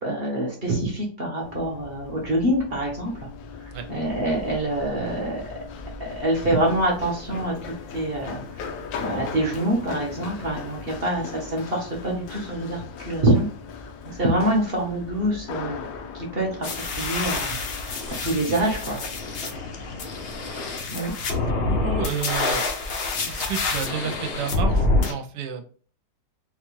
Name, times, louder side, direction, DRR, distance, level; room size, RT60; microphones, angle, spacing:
voice 1, 0.0-3.1 3.9-5.4 6.0-8.7 9.0-13.5 14.0-15.8 16.3-16.5 17.0-17.9 18.2-19.0 20.9-21.1, right 1 dB, 45° right, -1 dB, 0.8 m, -25 dB
Run, 1.4-20.5, left 5 dB, 90° left, 1.4 m, -39 dB
sound 1, 16.6-25.1, left 3 dB, 65° left, 0.6 m, -27 dB
voice 2, 21.4-22.6 23.3-25.7, right 7 dB, 75° right, 5 dB, 1.2 m, -31 dB
4.1 x 2.3 x 3.0 m, 0.42 s
omnidirectional pair, 2.0 m